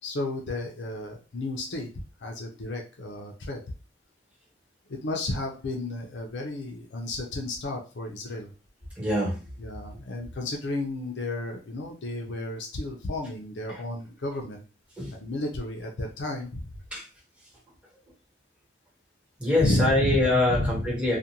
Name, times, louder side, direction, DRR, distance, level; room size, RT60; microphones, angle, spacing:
voice 1, 0.0-1.9 2.2-3.6 4.9-8.5 9.6-14.6 15.1-16.7 19.6-20.2 20.5-20.9, left 2 dB, 85° left, 1 dB, 0.5 m, -32 dB
voice 2, 9.0-9.4 15.0-15.1 16.9-17.0 19.4-21.2, left 1 dB, 5° right, -5 dB, 1.2 m, -24 dB
2.5 x 2.2 x 2.8 m, 0.33 s
head